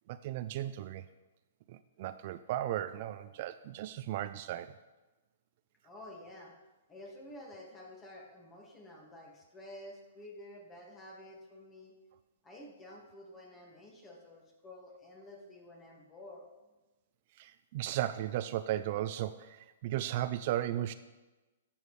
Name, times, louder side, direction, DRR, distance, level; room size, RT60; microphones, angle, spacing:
voice 1, 0.1-1.0 1.7-4.7 17.4-20.9, right 13 dB, 50° right, 12 dB, 0.3 m, -35 dB
voice 2, 5.8-6.5 6.9-11.9 12.4-16.4, left 1 dB, 20° left, -1 dB, 1.9 m, -51 dB
11.0 x 7.1 x 3.2 m, 1.1 s
hypercardioid pair, 135°, 0 cm